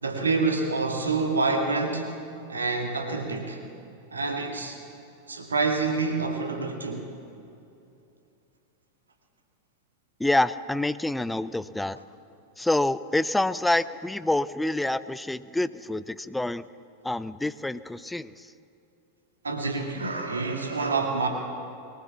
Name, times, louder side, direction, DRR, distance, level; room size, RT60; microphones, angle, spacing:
voice 1, 0.0-2.2 2.5-3.6 4.1-4.8 5.3-7.1 19.4-21.3, right 3 dB, 75° right, 3 dB, 2.2 m, -27 dB
voice 2, 10.2-12.0 12.6-16.7 17.0-18.5, left 2 dB, 5° left, 16 dB, 0.6 m, -27 dB
22.5 x 19.5 x 7.3 m, 2.7 s
figure-of-eight pair, 90°, 0 cm